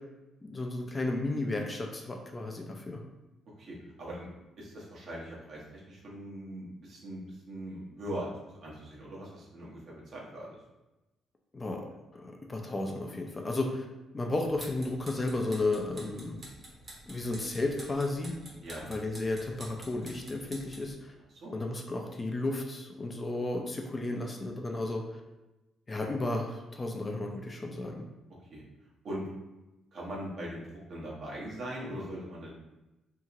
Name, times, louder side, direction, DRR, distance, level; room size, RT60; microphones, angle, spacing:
voice 1, 0.4-3.0 11.5-11.8 12.1-13.8 14.1-16.4 17.1-18.3 18.9-21.1 21.5-25.0 25.9-28.0, left 2 dB, 25° left, 2 dB, 0.4 m, -33 dB
voice 2, 3.6-4.3 4.6-10.6 18.6-18.9 21.4-21.6 28.5-28.6 29.0-29.2 29.9-30.6 30.9-32.5, right 1 dB, 60° right, -4 dB, 0.9 m, -41 dB
sound 1, 14.4-20.9, right 1 dB, 30° right, 1.0 m, -49 dB
2.8 x 2.8 x 2.4 m, 1.0 s
cardioid pair, 90°, 0 cm